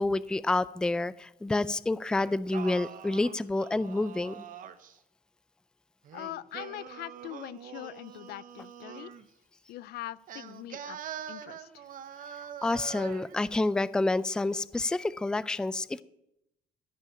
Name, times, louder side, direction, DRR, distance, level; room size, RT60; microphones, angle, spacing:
voice 1, 0.0-4.4 12.6-16.0, left 2 dB, 5° left, 18 dB, 0.4 m, -28 dB
Singing, 2.2-5.0 6.0-9.2 10.3-13.4, right 9 dB, 55° right, 0.9 m, -44 dB
voice 2, 6.1-9.1 9.7-11.0 11.3-11.9, left 15 dB, 70° left, 20 dB, 0.5 m, -42 dB
15.5 x 5.3 x 8.7 m, 0.83 s
cardioid pair, 110°, 17 cm